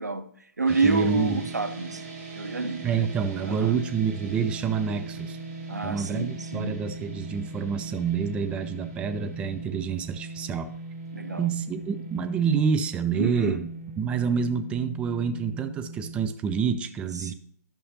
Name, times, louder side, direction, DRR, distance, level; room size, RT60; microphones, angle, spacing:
voice 1, 0.0-2.0 2.4-2.9 3.4-3.8 5.7-6.8 11.1-11.5 13.1-13.6 17.2-17.3, right 3 dB, 85° right, 0.9 m, -28 dB
voice 2, 0.7-1.4 2.8-5.4 5.8-10.7 11.4-13.7 14.0-17.3, right 6 dB, 10° right, 0.4 m, -28 dB
sound 1, 0.7-16.3, right 3 dB, 40° right, 3.1 m, -39 dB
11.0 x 6.7 x 2.9 m
figure-of-eight pair, 130°, 9 cm